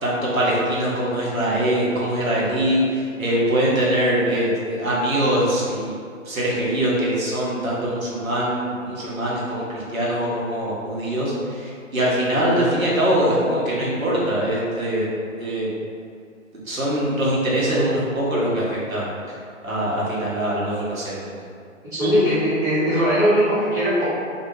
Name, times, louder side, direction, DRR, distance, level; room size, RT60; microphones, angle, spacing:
voice 1, 0.0-5.9 6.2-15.1 15.4-15.7 16.6-19.1 19.6-21.3, right 1 dB, 90° right, -7 dB, 0.9 m, -23 dB
voice 2, 21.9-24.0, equal, 10° right, -15 dB, 1.0 m, -19 dB
2.3 x 2.1 x 3.1 m, 2.3 s
figure-of-eight pair, 125°, 40 cm